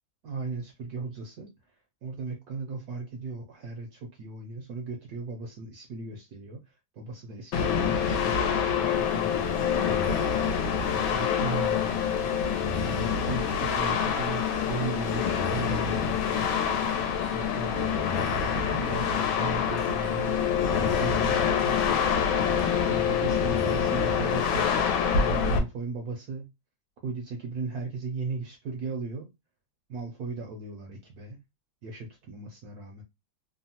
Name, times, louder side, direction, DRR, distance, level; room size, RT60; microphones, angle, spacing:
voice 1, 0.2-1.5 2.0-6.6 6.9-10.2 10.8-12.3 12.7-16.5 17.3-20.4 20.7-21.6 22.8-24.7 25.1-26.5 27.0-29.3 29.9-31.4 31.8-33.0, right 3 dB, 70° right, 0.9 m, -37 dB
sound 1, 7.5-25.6, left 7 dB, 80° left, 1.4 m, -26 dB
3.3 x 2.0 x 2.7 m
omnidirectional pair, 2.1 m